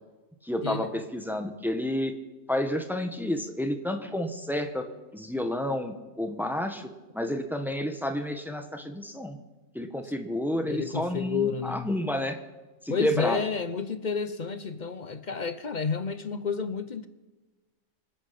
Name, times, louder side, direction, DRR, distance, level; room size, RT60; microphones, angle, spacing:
voice 1, 0.4-2.1 2.5-4.8 5.1-6.9 7.1-9.4 9.7-12.4 12.8-13.4, left 1 dB, ahead, 6 dB, 1.2 m, -30 dB
voice 2, 10.7-11.9 12.9-17.1, left 5 dB, 40° left, 11 dB, 0.8 m, -30 dB
25.0 x 9.0 x 5.8 m, 1.2 s
omnidirectional pair, 1.4 m